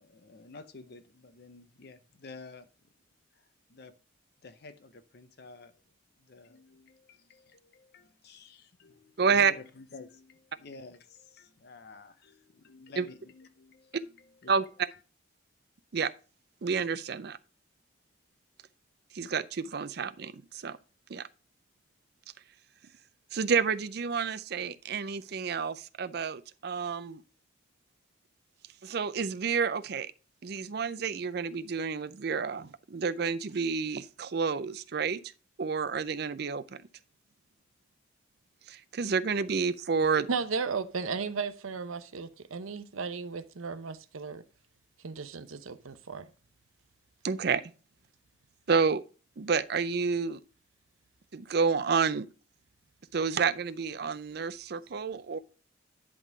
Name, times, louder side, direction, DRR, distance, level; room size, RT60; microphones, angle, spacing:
voice 1, 0.0-2.7 3.3-3.9 4.4-5.8 6.2-14.6 14.9-15.0, left 3 dB, 50° left, 0.6 m, -51 dB
voice 2, 9.2-9.5 13.0-13.1 14.5-14.6 15.9-16.1 16.6-17.4 19.1-20.8 21.1-21.3 23.3-27.2 28.8-30.1 30.4-35.2 35.6-36.8 38.7-40.3 47.2-47.6 48.7-49.0 49.4-50.4 51.3-52.3 53.1-55.4, right 5 dB, 50° right, 0.5 m, -29 dB
voice 3, 40.3-44.4 45.0-46.3, right 5 dB, 90° right, 0.7 m, -35 dB
10.5 x 3.7 x 4.7 m
head